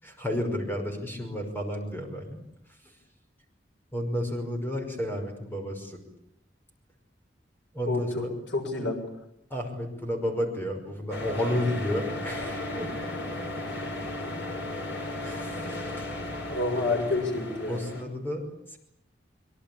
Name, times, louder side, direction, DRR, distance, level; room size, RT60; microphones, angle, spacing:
voice 1, 0.0-2.4 2.7-3.0 3.9-6.0 7.7-8.3 9.5-12.9 15.2-16.1 17.7-18.8, equal, 10° left, 4 dB, 5.6 m, -32 dB
voice 2, 7.9-8.3 8.5-9.0 16.5-17.8, left 2 dB, 90° left, 3 dB, 6.8 m, -28 dB
sound 1, 11.1-18.0, left 1 dB, 70° left, 5.6 m, -35 dB
25.0 x 24.0 x 8.8 m, 0.78 s
head